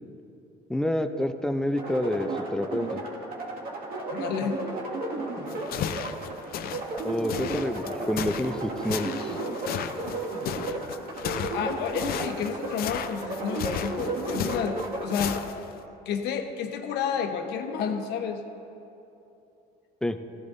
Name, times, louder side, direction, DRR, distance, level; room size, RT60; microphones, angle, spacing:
voice 1, 0.7-3.0 7.0-9.3 20.0-20.2, left 1 dB, 5° left, 8 dB, 0.5 m, -28 dB
sound 1, 1.8-15.4, right 2 dB, 60° right, 2.1 m, -34 dB
voice 2, 4.1-4.6 11.5-15.4 16.0-18.4, left 7 dB, 80° left, 5 dB, 1.1 m, -30 dB
sound 2, 5.5-15.8, left 9 dB, 65° left, 0.6 m, -34 dB
15.0 x 15.0 x 2.7 m, 2.8 s
cardioid pair, 110°, 17 cm